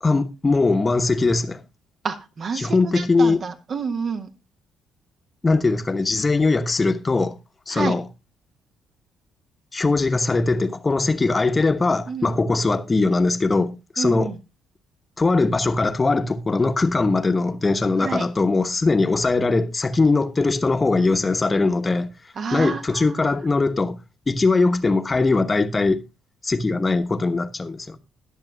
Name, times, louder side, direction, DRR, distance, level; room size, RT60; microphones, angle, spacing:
voice 1, 0.0-1.6 2.5-3.4 5.4-7.4 7.7-8.1 9.7-14.3 15.2-22.1 22.5-24.0 24.3-26.0 26.4-28.0, left 3 dB, 25° left, 1.1 m, -21 dB
voice 2, 2.0-4.3 7.7-8.0 12.1-12.3 14.0-14.4 18.0-18.3 22.4-23.3, right 5 dB, 45° right, 1.5 m, -29 dB
20.5 x 7.3 x 2.3 m
figure-of-eight pair, 45°, 0 cm